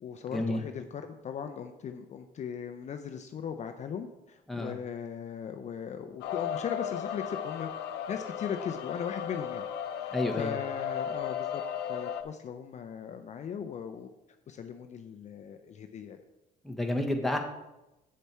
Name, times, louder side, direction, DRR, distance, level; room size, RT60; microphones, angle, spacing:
voice 1, 0.0-7.7 8.1-9.6 10.0-11.6 11.9-14.1 14.5-16.2, left 7 dB, 45° left, 7 dB, 0.6 m, -38 dB
sound 1, 6.2-12.2, left 9 dB, 85° left, 0.7 m, -35 dB
voice 2, 10.1-10.5 16.6-17.4, left 1 dB, ahead, 2 dB, 1.2 m, -30 dB
7.6 x 6.7 x 4.4 m, 0.96 s
cardioid pair, 110°, 17 cm